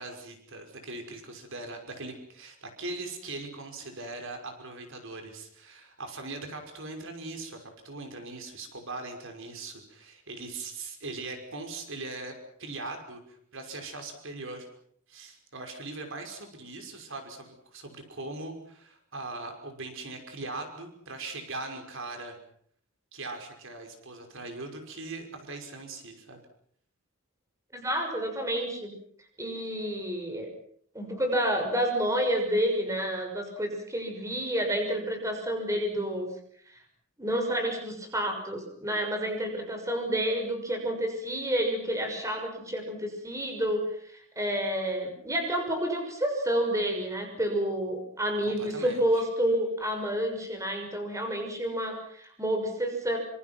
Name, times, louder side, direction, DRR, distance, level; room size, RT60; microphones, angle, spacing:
voice 1, 0.0-12.3 12.6-14.7 15.1-22.4 23.1-26.4 48.4-49.2, right 3 dB, 65° right, 5 dB, 5.8 m, -40 dB
voice 2, 27.7-29.0 29.4-30.5 30.9-36.3 36.7-36.8 37.2-43.9 44.4-53.2, equal, 15° right, 3 dB, 6.3 m, -29 dB
28.0 x 27.0 x 6.1 m, 0.63 s
head